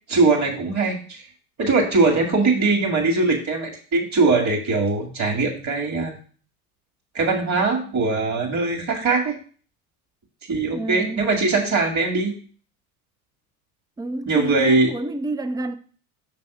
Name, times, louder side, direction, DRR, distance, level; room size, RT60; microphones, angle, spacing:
voice 1, 0.1-1.2 1.6-6.2 7.1-9.4 10.5-12.3 14.3-14.9, right 3 dB, 40° right, 2.2 m, -21 dB
voice 2, 10.7-11.3 14.0-15.7, right 2 dB, 10° right, 0.5 m, -29 dB
6.2 x 3.4 x 5.9 m
hypercardioid pair, 85°, 43 cm